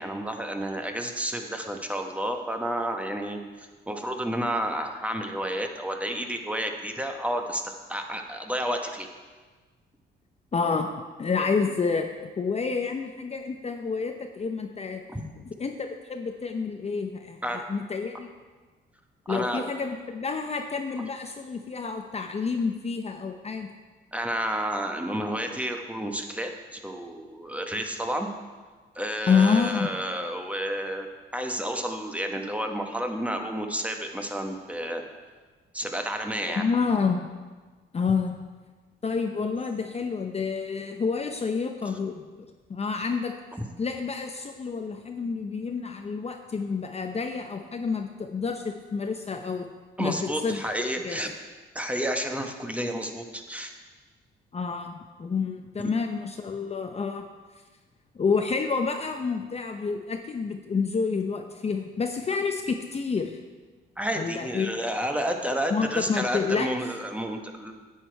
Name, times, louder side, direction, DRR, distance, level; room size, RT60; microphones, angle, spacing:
voice 1, 0.0-9.1 15.1-15.2 17.4-17.6 19.3-19.6 24.1-28.3 28.9-35.0 35.7-36.6 50.0-51.3 51.7-53.7 64.0-67.7, equal, 5° right, 4 dB, 1.1 m, -31 dB
voice 2, 10.5-12.1 12.4-15.0 15.4-18.3 19.3-23.7 29.3-30.0 36.5-37.3 37.9-38.4 39.0-43.3 43.8-49.7 50.0-50.6 51.0-51.2 54.5-54.9 55.2-57.3 58.1-63.4 64.2-64.7 65.7-66.7, left 5 dB, 30° left, 5 dB, 0.7 m, -28 dB
9.8 x 8.3 x 4.6 m, 1.4 s
cardioid pair, 90°, 20 cm